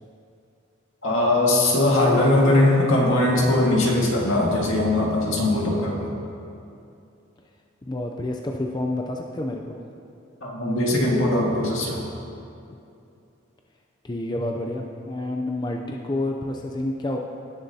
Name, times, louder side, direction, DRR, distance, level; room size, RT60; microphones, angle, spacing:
voice 1, 1.0-6.1 10.4-12.0, left 1 dB, 80° left, -2 dB, 1.8 m, -20 dB
voice 2, 7.8-9.8 14.0-17.2, left 1 dB, 20° left, 1 dB, 0.4 m, -29 dB
17.0 x 7.0 x 2.8 m, 2.6 s
head